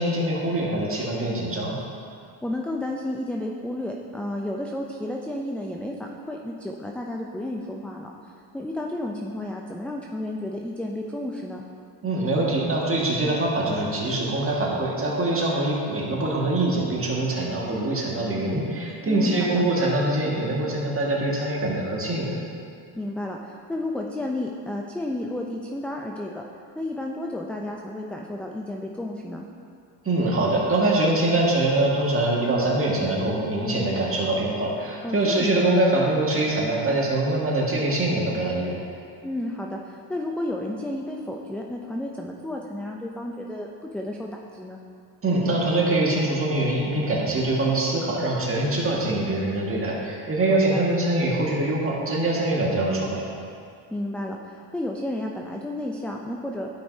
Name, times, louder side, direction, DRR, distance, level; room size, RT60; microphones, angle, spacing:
voice 1, 0.0-1.8 12.0-22.3 30.0-38.8 45.2-53.2, right 2 dB, 25° right, -4 dB, 1.8 m, -24 dB
voice 2, 2.4-8.1 8.5-11.6 19.0-19.6 23.0-26.5 26.8-29.4 35.0-35.7 39.2-44.8 50.5-50.8 53.9-56.7, left 1 dB, 5° left, -1 dB, 0.3 m, -32 dB
11.5 x 5.3 x 2.7 m, 2.4 s
supercardioid pair, 90°, 48 cm